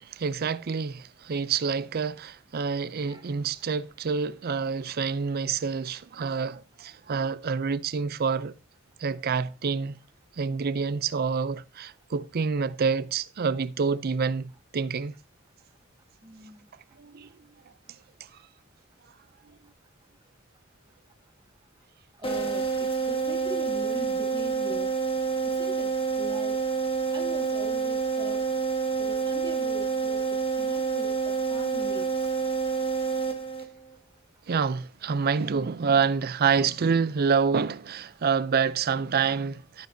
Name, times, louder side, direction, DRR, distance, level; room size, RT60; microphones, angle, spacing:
voice 1, 0.0-8.5 9.0-10.0 10.4-15.1 17.0-17.3 34.5-39.9, right 5 dB, 50° right, 0.5 m, -27 dB
voice 2, 16.2-16.6 22.2-24.9 25.4-26.6 27.1-28.5 29.0-32.1, right 1 dB, 20° right, 1.1 m, -41 dB
sound 1, 22.2-33.9, right 5 dB, 25° left, 1.5 m, -28 dB
12.5 x 9.3 x 2.7 m
head